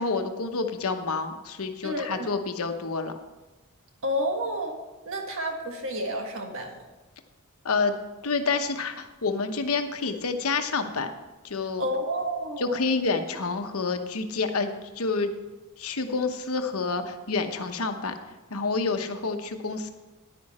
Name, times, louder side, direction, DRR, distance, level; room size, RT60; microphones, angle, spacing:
voice 1, 0.0-3.1 7.6-8.0 8.2-11.1 11.4-11.9 12.6-15.3 15.8-18.1 18.5-19.9, left 4 dB, 70° left, 6 dB, 1.0 m, -28 dB
voice 2, 1.8-2.3 4.0-4.8 5.0-6.8 11.8-12.8, equal, 60° right, 3 dB, 1.7 m, -30 dB
10.5 x 9.8 x 4.3 m, 1.2 s
head